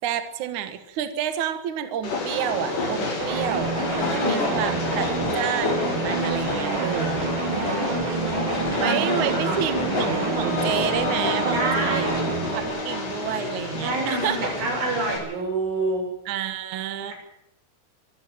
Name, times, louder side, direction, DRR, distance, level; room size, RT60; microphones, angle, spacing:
voice 1, 0.0-5.1 5.3-7.3 8.8-12.1 12.5-14.4 16.3-17.1, right 9 dB, 60° right, 9 dB, 2.2 m, -29 dB
Train, 2.0-15.2, left 3 dB, 60° left, 8.5 m, -29 dB
sound 1, 3.2-12.6, right 5 dB, 40° right, 1.9 m, -29 dB
voice 2, 4.1-4.6 7.4-9.6 11.5-12.2 13.8-16.1 17.1-17.2, right 2 dB, 75° right, 1 dB, 9.2 m, -28 dB
Wind instrument woodwind instrument, 10.1-14.2, equal, 45° left, 1.2 m, -33 dB
24.5 x 13.0 x 9.1 m, 0.85 s
omnidirectional pair, 5.5 m